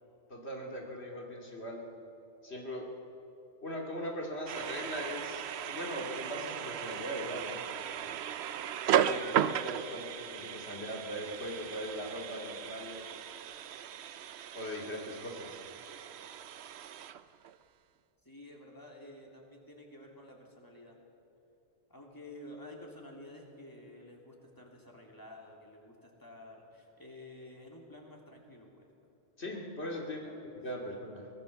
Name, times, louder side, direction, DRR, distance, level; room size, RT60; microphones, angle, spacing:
voice 1, 0.3-1.8 2.4-2.9 3.6-7.6 8.9-13.1 14.5-15.6 29.4-30.2 30.4-31.3, equal, 80° left, 0 dB, 3.0 m, -40 dB
sound 1, 4.2-6.8 7.0-9.2 9.7-9.8 10.0-10.4 10.7-14.2, equal, 50° left, 6.3 m, -60 dB
sound 2, 4.5-17.6, right 9 dB, 80° right, 0.9 m, -36 dB
voice 2, 18.2-21.0 21.9-28.9 30.0-30.5, left 1 dB, 20° left, -1 dB, 3.3 m, -51 dB
24.0 x 18.5 x 7.0 m, 2.8 s
omnidirectional pair, 1.1 m